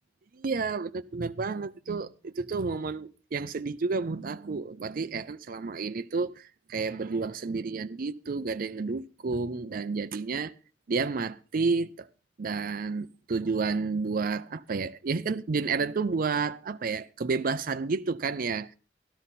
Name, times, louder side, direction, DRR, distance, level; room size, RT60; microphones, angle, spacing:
voice 1, 0.3-10.5 10.9-12.1 12.4-18.7, right 4 dB, 50° right, 0.5 m, -30 dB
12.5 x 12.5 x 4.1 m
head